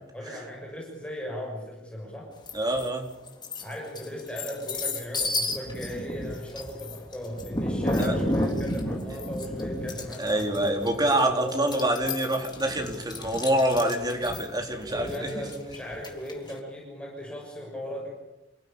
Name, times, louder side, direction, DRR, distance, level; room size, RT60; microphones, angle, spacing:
voice 1, 0.1-2.3 3.6-10.9 11.2-11.7 14.8-18.1, equal, 5° left, -2 dB, 6.5 m, -37 dB
sound 1, 2.5-2.9 3.3-16.5, left 1 dB, 25° left, 3.8 m, -32 dB
voice 2, 2.5-3.1 8.0-8.2 10.2-15.4, right 1 dB, 20° right, 3 dB, 3.9 m, -26 dB
29.0 x 15.5 x 8.9 m, 0.97 s
head